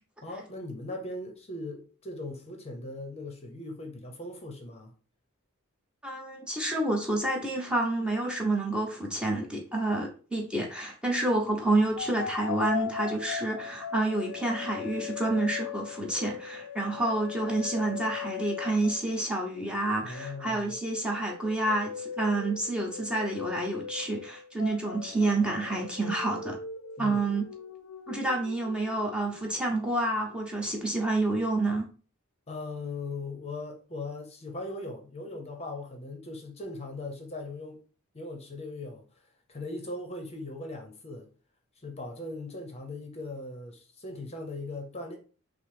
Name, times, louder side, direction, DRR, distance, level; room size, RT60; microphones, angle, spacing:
voice 1, 0.2-4.9 20.0-20.7 27.0-27.2 32.5-37.8 38.1-39.0 39.5-41.3 41.8-45.2, left 2 dB, 30° left, 0.7 m, -39 dB
voice 2, 6.0-26.6 27.0-27.4 28.1-31.9, right 2 dB, 5° right, 0.7 m, -29 dB
sound 1, 12.0-19.4 19.7-30.8, left 8 dB, 85° left, 0.4 m, -40 dB
5.8 x 2.0 x 3.4 m
head